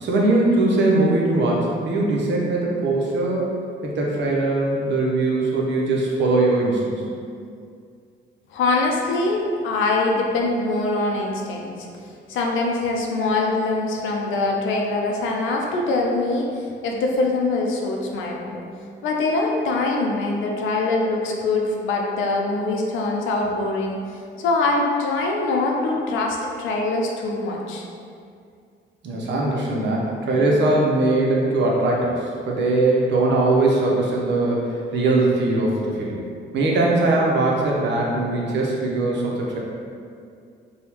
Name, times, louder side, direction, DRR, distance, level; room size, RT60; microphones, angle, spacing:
voice 1, 0.0-3.4 3.8-7.0 29.0-36.2 36.5-39.6, right 2 dB, 65° right, -3 dB, 0.7 m, -21 dB
voice 2, 8.5-11.9 12.3-18.6 19.0-24.0 24.4-27.9, left 2 dB, 80° left, 0 dB, 0.5 m, -23 dB
3.3 x 2.3 x 2.9 m, 2.3 s
cardioid pair, 90°, 20 cm